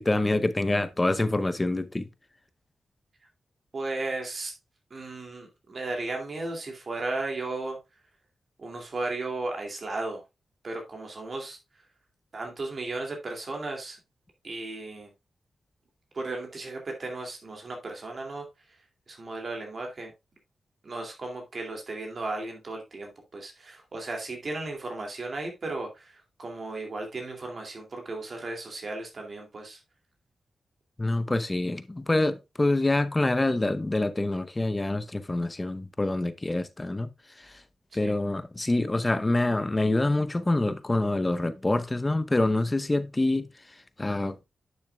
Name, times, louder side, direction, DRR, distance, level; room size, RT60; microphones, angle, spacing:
voice 1, 0.0-2.1 31.0-37.1 37.4-37.6 37.9-43.5 44.0-44.4, left 2 dB, 20° left, 0.7 m, -26 dB
voice 2, 3.7-4.5 4.9-7.8 8.6-10.2 10.6-11.6 12.3-14.0 14.4-15.1 16.1-18.5 19.1-20.1 20.8-29.8 38.0-38.2, right 2 dB, 50° right, 2.4 m, -35 dB
10.5 x 6.5 x 2.3 m
cardioid pair, 90°, 0 cm